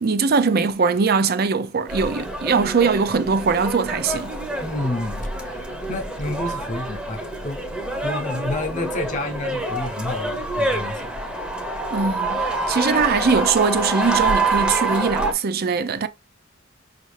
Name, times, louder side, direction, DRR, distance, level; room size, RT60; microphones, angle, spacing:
voice 1, 0.0-4.4 11.9-16.1, right 5 dB, 50° right, 0.5 m, -21 dB
sound 1, 1.9-15.3, right 2 dB, 5° right, 0.7 m, -26 dB
voice 2, 4.6-7.6 8.0-11.1, left 2 dB, 40° left, 0.7 m, -30 dB
5.2 x 2.5 x 3.2 m
head